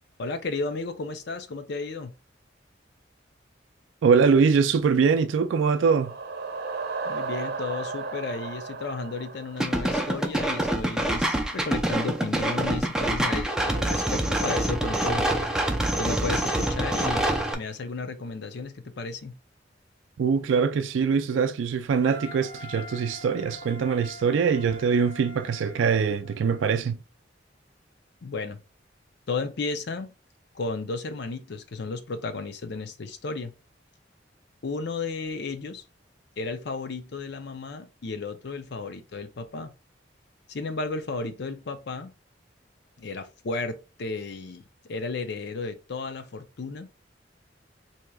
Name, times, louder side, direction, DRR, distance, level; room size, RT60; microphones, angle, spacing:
voice 1, 0.2-2.1 7.0-15.3 16.0-17.3 17.5-19.4 28.2-28.6 29.3-30.1 30.5-33.5 34.6-35.8 36.4-39.7 40.5-42.1 43.0-46.9, left 3 dB, 65° left, 0.6 m, -33 dB
voice 2, 4.0-6.1 20.2-27.0, right 5 dB, 90° right, 0.4 m, -23 dB
sound 1, 5.5-10.4, right 4 dB, 60° right, 0.7 m, -35 dB
sound 2, 9.6-17.5, right 1 dB, 5° right, 0.5 m, -26 dB
Wind instrument woodwind instrument, 22.0-26.8, left 3 dB, 30° left, 1.1 m, -44 dB
4.5 x 2.8 x 2.3 m
head